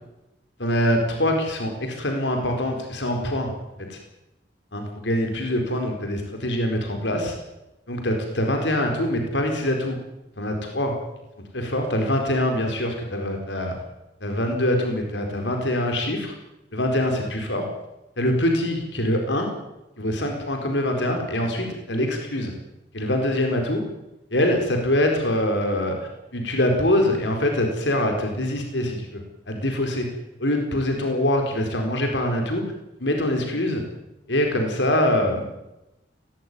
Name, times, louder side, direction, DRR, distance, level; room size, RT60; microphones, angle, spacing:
voice 1, 0.6-3.5 3.9-4.0 4.7-7.3 7.9-9.9 10.4-10.9 11.5-13.8 14.2-16.3 16.7-17.6 18.2-19.5 20.0-22.5 22.9-23.8 24.3-26.0 26.3-29.2 29.5-30.1 30.4-32.6 33.0-33.8 34.3-35.4, left 1 dB, 80° left, 3 dB, 4.5 m, -24 dB
18.5 x 17.0 x 9.6 m, 0.93 s
head